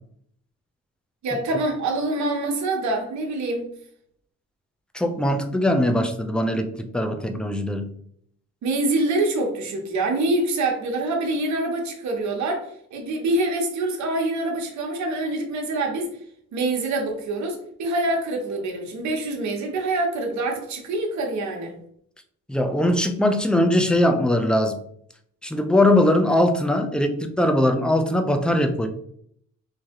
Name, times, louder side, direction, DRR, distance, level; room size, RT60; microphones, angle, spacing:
voice 1, 1.2-3.7 8.6-16.1 16.5-21.7, right 2 dB, 70° right, 2 dB, 1.0 m, -25 dB
voice 2, 4.9-7.9 22.5-24.8 25.4-28.9, left 1 dB, 5° left, 6 dB, 0.4 m, -21 dB
3.2 x 2.6 x 3.6 m, 0.67 s
cardioid pair, 90°, 30 cm